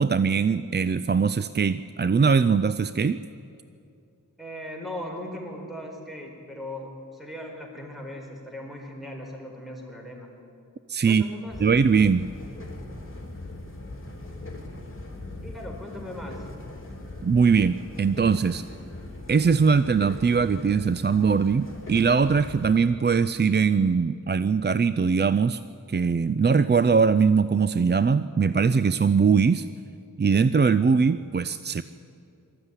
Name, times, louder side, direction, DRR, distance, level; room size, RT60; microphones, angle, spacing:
voice 1, 0.0-3.2 10.9-11.2 11.6-12.3 17.2-18.6 19.3-25.6 25.9-29.7 30.2-31.8, right 5 dB, 30° right, 14 dB, 0.4 m, -21 dB
voice 2, 4.4-10.3 11.1-11.6 15.4-16.5, left 1 dB, ahead, 0 dB, 4.8 m, -38 dB
sound 1, 11.5-22.8, left 2 dB, 40° left, 3.4 m, -40 dB
19.5 x 14.0 x 9.8 m, 2.6 s
wide cardioid pair, 60°, 33 cm